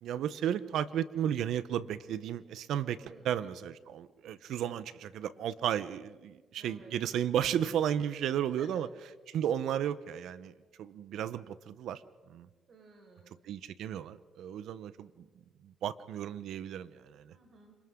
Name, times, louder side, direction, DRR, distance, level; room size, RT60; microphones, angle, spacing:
voice 1, 0.0-3.0 3.2-8.9 9.3-10.5 10.8-12.0 12.3-12.5 13.5-15.1 15.6-17.3, right 10 dB, 80° right, 14 dB, 1.0 m, -33 dB
voice 2, 3.0-3.3 6.6-6.9 8.6-8.8 12.7-13.4 17.3-17.7, right 3 dB, 55° right, 2 dB, 5.2 m, -56 dB
29.0 x 26.5 x 3.9 m, 1.3 s
cardioid pair, 90°, 0 cm